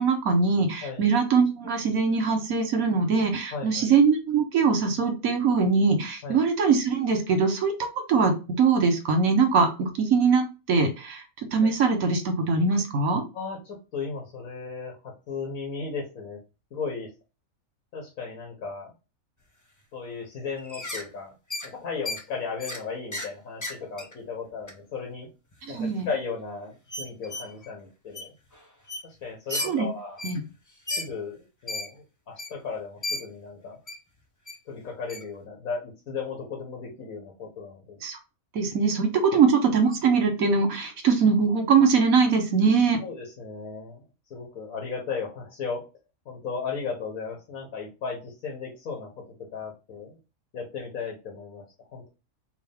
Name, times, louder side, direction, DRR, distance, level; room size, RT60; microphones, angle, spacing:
voice 1, 0.0-7.7 8.1-11.2 11.5-13.2 25.7-26.1 29.5-29.9 30.2-30.4 38.0-38.2 38.5-43.0, right 5 dB, 80° right, 4 dB, 1.4 m, -22 dB
voice 2, 3.5-3.9 6.2-6.4 13.3-16.4 16.7-17.1 17.9-18.9 19.9-21.3 21.6-25.3 25.7-28.3 29.0-30.2 30.9-33.8 34.7-38.0 43.0-44.0 44.3-45.8 46.2-49.1 49.5-50.2 50.5-51.6 51.9-52.1, left 5 dB, 85° left, 0 dB, 1.6 m, -35 dB
sound 1, 20.6-21.1 21.5-21.7 22.0-22.2 22.6-22.8 23.1-23.3 23.6-24.1 24.7-24.8 25.5-25.6 26.0-26.1 26.9-27.7 28.1-28.3 28.5-28.6 28.9-29.0 29.5-29.7 30.2-30.4 30.9-31.1 31.7-31.9 32.4-32.5 33.0-33.2 33.9-34.0 34.5-34.6 35.1-35.2, left 2 dB, 30° left, 0.3 m, -33 dB
4.7 x 2.7 x 3.4 m, 0.29 s
omnidirectional pair, 1.5 m